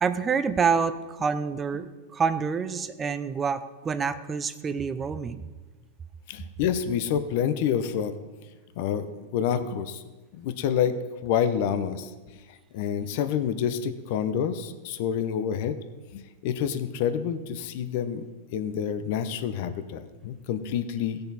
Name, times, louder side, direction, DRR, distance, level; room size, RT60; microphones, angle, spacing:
voice 1, 0.0-5.4, right 6 dB, 20° right, 12 dB, 0.6 m, -27 dB
voice 2, 6.3-8.1 8.8-10.0 10.4-12.1 12.7-15.8 16.1-18.3 18.5-21.2, left 8 dB, 55° left, 11 dB, 0.7 m, -28 dB
15.5 x 6.7 x 4.1 m, 1.3 s
hypercardioid pair, 130°, 0 cm